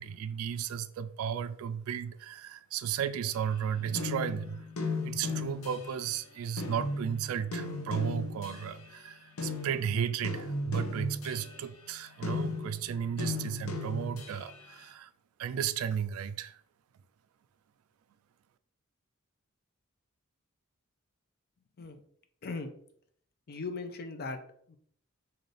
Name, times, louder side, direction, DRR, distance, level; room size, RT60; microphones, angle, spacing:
voice 1, 0.0-4.6 5.0-15.1 15.4-16.6, right 8 dB, 80° right, 0.3 m, -34 dB
sound 1, 3.3-6.2 6.6-8.9 9.4-14.6, left 3 dB, 90° left, 0.7 m, -37 dB
voice 2, 23.5-24.4 24.7-24.8, left 3 dB, 50° left, 0.5 m, -38 dB
3.2 x 2.7 x 4.0 m
head